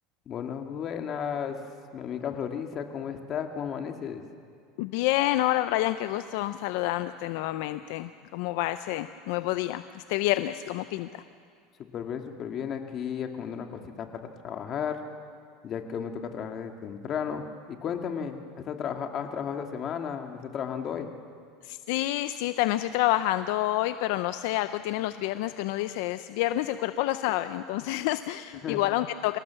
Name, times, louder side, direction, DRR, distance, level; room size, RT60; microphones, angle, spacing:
voice 1, 0.3-1.6 1.9-4.2 11.9-14.1 14.4-15.0 15.6-21.1 28.6-28.8, left 7 dB, 40° left, 4 dB, 2.0 m, -34 dB
voice 2, 4.8-11.2 21.6-29.4, left 15 dB, 70° left, 12 dB, 0.6 m, -28 dB
26.0 x 17.5 x 7.1 m, 2.2 s
supercardioid pair, 120°, 0 cm